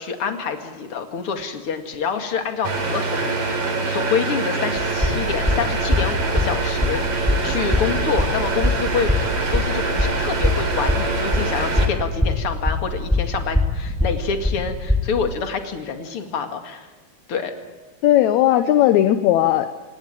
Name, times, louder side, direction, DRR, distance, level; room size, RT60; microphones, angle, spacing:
voice 1, 0.0-9.1 9.5-16.9 17.3-17.5, left 6 dB, 45° left, 6 dB, 2.7 m, -27 dB
sound 1, 2.6-11.9, right 3 dB, 50° right, 4.2 m, -24 dB
sound 2, 4.8-15.1, left 1 dB, ahead, 6.7 m, -21 dB
voice 2, 18.0-19.8, left 12 dB, 70° left, 10 dB, 2.0 m, -17 dB
29.5 x 18.0 x 9.1 m, 1.3 s
omnidirectional pair, 3.8 m